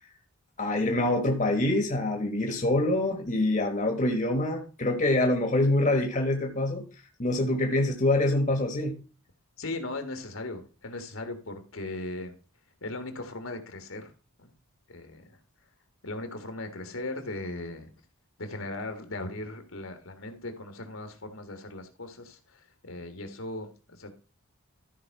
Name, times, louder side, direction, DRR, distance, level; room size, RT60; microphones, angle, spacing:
voice 1, 0.6-6.8 7.2-9.0, left 1 dB, 35° left, 3 dB, 1.3 m, -25 dB
voice 2, 9.6-12.3 12.8-14.1 14.4-14.5 14.9-15.4 16.0-17.9 18.4-24.2, left 2 dB, 65° left, 6 dB, 1.6 m, -38 dB
13.0 x 4.9 x 4.7 m, 0.35 s
head